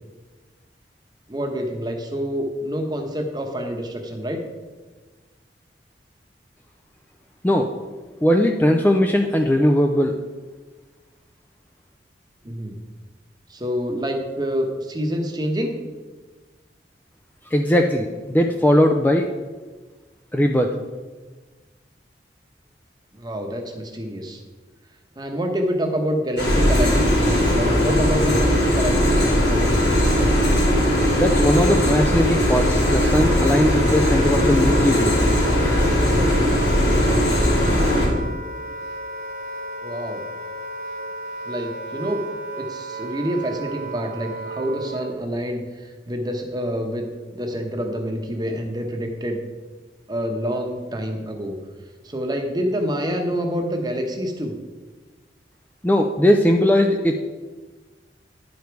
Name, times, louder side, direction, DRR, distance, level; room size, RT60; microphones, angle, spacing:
voice 1, 1.3-4.4 12.4-12.8 13.5-15.7 23.1-24.4 25.2-30.0 39.8-40.2 41.5-42.2 42.6-47.1 47.3-49.4 50.1-51.6 52.0-54.5, equal, 25° right, 3 dB, 1.0 m, -27 dB
voice 2, 8.2-10.2 17.4-19.3 20.3-20.8 31.2-35.1 55.8-57.2, equal, 10° left, 3 dB, 0.4 m, -19 dB
sound 1, 26.4-38.1, equal, 80° left, 2.9 m, -19 dB
Wind instrument woodwind instrument, 32.6-45.3, right 2 dB, 50° right, 0.7 m, -34 dB
10.5 x 5.1 x 4.6 m, 1.3 s
head